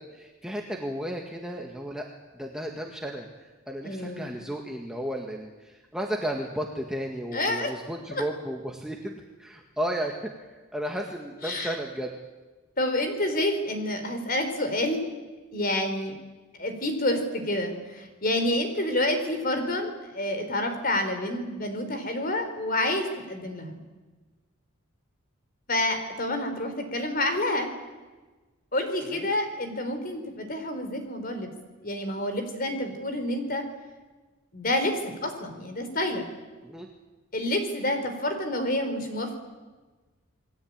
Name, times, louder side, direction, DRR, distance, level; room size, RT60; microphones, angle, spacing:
voice 1, 0.0-2.1 2.3-10.1 10.5-12.1 29.1-29.3 36.6-36.9, right 1 dB, 5° right, 0 dB, 1.9 m, -34 dB
voice 2, 3.8-4.3 7.3-7.7 8.1-8.2 11.4-11.8 12.8-15.1 15.5-16.1 16.6-23.8 25.7-27.7 28.7-31.5 31.8-33.6 34.5-36.3 37.3-39.4, left 1 dB, 40° left, 7 dB, 4.2 m, -28 dB
28.5 x 20.5 x 9.0 m, 1.3 s
head